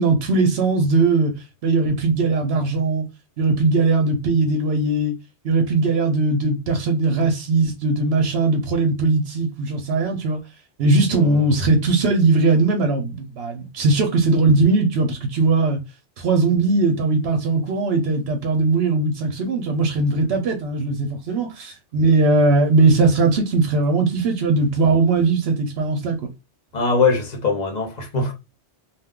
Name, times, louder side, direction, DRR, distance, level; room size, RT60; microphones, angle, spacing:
voice 1, 0.0-1.3 1.6-3.1 3.4-5.1 5.4-10.4 10.8-15.8 16.2-26.2, right 3 dB, 65° right, 0.8 m, -19 dB
voice 2, 11.1-11.4 26.7-28.3, left 4 dB, 45° left, 0.7 m, -22 dB
2.4 x 2.2 x 3.6 m
omnidirectional pair, 1.2 m